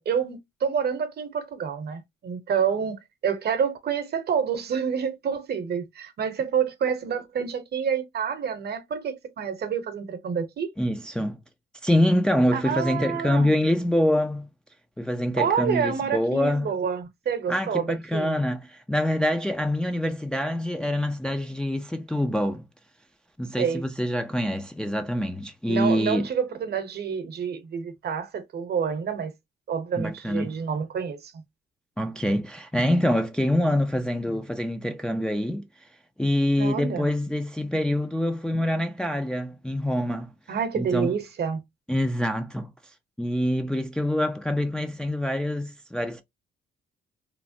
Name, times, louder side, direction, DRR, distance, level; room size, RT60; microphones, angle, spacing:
voice 1, 0.0-10.7 12.5-13.5 15.3-18.4 23.6-23.8 25.7-29.3 29.7-31.4 36.6-37.1 40.5-41.6, right 7 dB, 55° right, 0.8 m, -28 dB
voice 2, 10.8-11.4 11.8-14.5 15.0-16.7 17.5-22.6 23.4-26.3 30.0-30.5 32.0-35.6 36.2-40.3 40.8-41.1 41.9-42.7 43.2-46.2, left 1 dB, 5° left, 0.3 m, -25 dB
3.1 x 2.0 x 2.6 m
cardioid pair, 90°, 20 cm